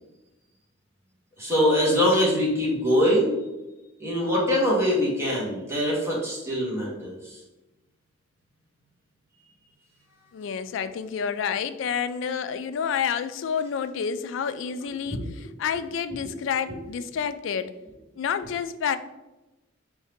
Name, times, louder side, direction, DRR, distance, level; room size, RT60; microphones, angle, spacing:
voice 1, 1.4-3.3 4.0-7.2 15.1-15.3, equal, 15° right, -5 dB, 1.3 m, -23 dB
voice 2, 10.3-17.7 18.2-19.0, left 7 dB, 70° left, 11 dB, 0.3 m, -29 dB
4.6 x 2.7 x 3.5 m, 1.0 s
head